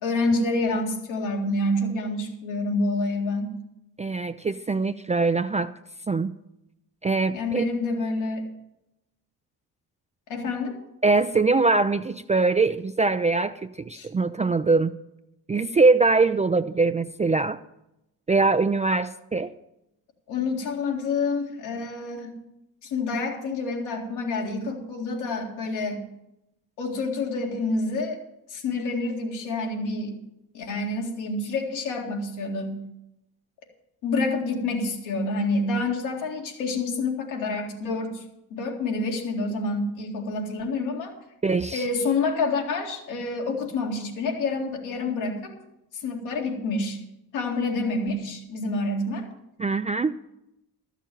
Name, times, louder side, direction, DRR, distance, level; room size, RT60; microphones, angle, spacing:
voice 1, 0.0-3.5 7.3-8.4 10.3-10.8 13.9-14.1 20.3-22.4 22.8-26.0 26.8-28.2 28.5-30.1 30.5-32.8 34.0-38.2 38.5-41.1 41.7-45.6 45.9-47.0 47.3-49.3, left 3 dB, 80° left, 0 dB, 2.3 m, -28 dB
voice 2, 4.0-5.7 6.1-6.3 7.0-7.7 11.0-14.9 15.5-17.6 18.3-19.5 41.4-41.8 49.6-50.1, right 3 dB, 15° right, 11 dB, 0.3 m, -22 dB
13.0 x 6.6 x 7.6 m, 0.88 s
hypercardioid pair, 50°, 47 cm